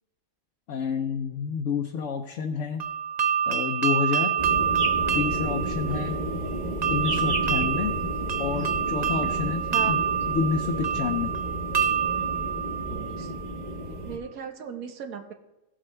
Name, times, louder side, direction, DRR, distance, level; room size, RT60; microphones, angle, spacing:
voice 1, 0.7-2.8 3.5-4.3 5.1-6.2 6.9-7.9 8.4-10.0 10.3-11.3, left 6 dB, 65° left, 4 dB, 1.0 m, -29 dB
sound 1, 2.8-13.6, right 7 dB, 55° right, 0.4 m, -27 dB
sound 2, 4.4-14.2, right 1 dB, 35° right, 1.2 m, -32 dB
voice 2, 12.9-13.3 14.0-15.3, right 7 dB, 80° right, 6 dB, 1.3 m, -37 dB
16.5 x 7.5 x 3.3 m, 1.0 s
omnidirectional pair, 1.5 m